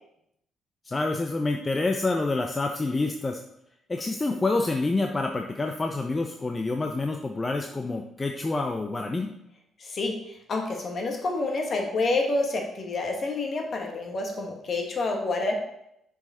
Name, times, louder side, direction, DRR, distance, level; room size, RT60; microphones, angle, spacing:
voice 1, 0.8-3.4 3.9-9.3, left 3 dB, 25° left, 4 dB, 0.5 m, -27 dB
voice 2, 9.8-15.5, left 2 dB, 50° left, 2 dB, 1.6 m, -28 dB
6.5 x 4.9 x 4.3 m, 0.79 s
cardioid pair, 90°, 0 cm